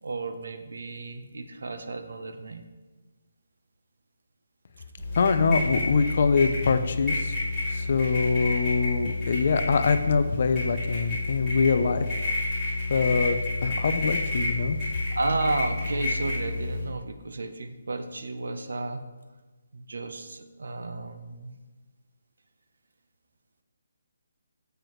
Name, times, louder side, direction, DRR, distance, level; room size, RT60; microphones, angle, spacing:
voice 1, 0.0-2.6 15.1-19.0 19.7-21.5, right 2 dB, 75° right, 8 dB, 0.8 m, -32 dB
sound 1, 5.0-16.8, left 2 dB, ahead, 2.8 m, -30 dB
voice 2, 5.2-7.3 7.7-12.1 12.9-14.8, left 4 dB, 35° left, 10 dB, 0.4 m, -24 dB
9.5 x 7.8 x 3.1 m, 1.2 s
hypercardioid pair, 180°, 0 cm